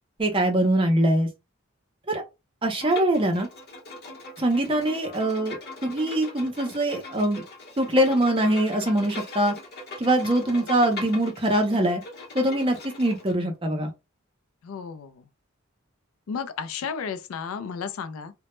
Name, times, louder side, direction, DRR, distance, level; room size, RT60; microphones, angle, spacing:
voice 1, 0.2-1.3 2.1-2.2 2.6-3.5 4.4-7.4 7.8-9.5 10.0-12.0 12.3-13.9, right 1 dB, 25° right, 0.5 m, -23 dB
Bowed string instrument, 2.8-13.3, left 2 dB, 50° left, 0.8 m, -40 dB
voice 2, 14.6-15.2 16.3-18.3, left 6 dB, 80° left, 0.4 m, -33 dB
2.1 x 2.0 x 2.9 m
head